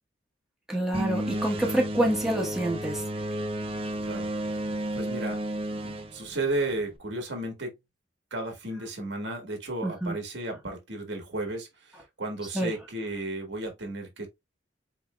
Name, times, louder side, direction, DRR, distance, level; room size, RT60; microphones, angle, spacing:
voice 1, 0.7-3.0 9.8-10.2 12.5-12.7, right 1 dB, 5° right, 1.0 m, -27 dB
sound 1, 0.9-7.0, right 1 dB, 30° right, 0.6 m, -32 dB
voice 2, 4.0-4.6 4.9-5.4 5.8-7.7 8.3-14.3, right 2 dB, 80° right, 1.6 m, -34 dB
4.2 x 3.7 x 2.2 m
head